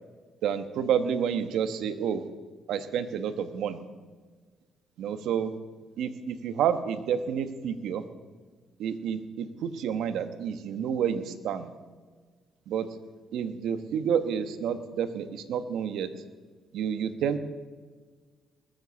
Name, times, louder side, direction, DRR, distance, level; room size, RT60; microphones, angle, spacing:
voice 1, 0.4-2.3 2.7-3.8 5.0-5.6 6.0-8.0 8.8-11.7 12.7-12.9 13.3-16.1 16.7-17.4, right 8 dB, 80° right, 10 dB, 1.2 m, -29 dB
20.5 x 8.0 x 7.1 m, 1.4 s
cardioid pair, 90°, 0 cm